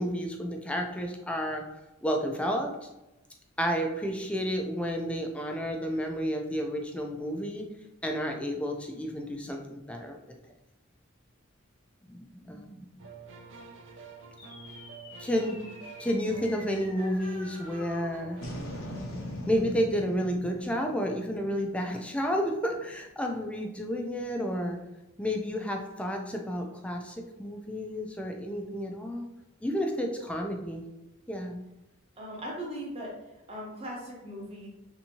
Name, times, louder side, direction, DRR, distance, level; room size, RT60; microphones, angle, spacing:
voice 1, 0.0-1.6 2.0-2.7 3.6-7.7 8.0-10.2 12.1-13.0 15.2-15.6 16.0-18.4 19.5-24.8 25.2-29.3 29.6-30.8 31.3-31.6, equal, 5° left, 2 dB, 0.3 m, -31 dB
sound 1, 13.0-18.6, right 3 dB, 65° right, 0.4 m, -47 dB
sound 2, 14.4-23.0, left 1 dB, 80° left, 0.8 m, -43 dB
voice 2, 32.2-33.2 33.5-34.7, equal, 30° right, -4 dB, 0.9 m, -39 dB
3.4 x 2.7 x 2.9 m, 0.95 s
head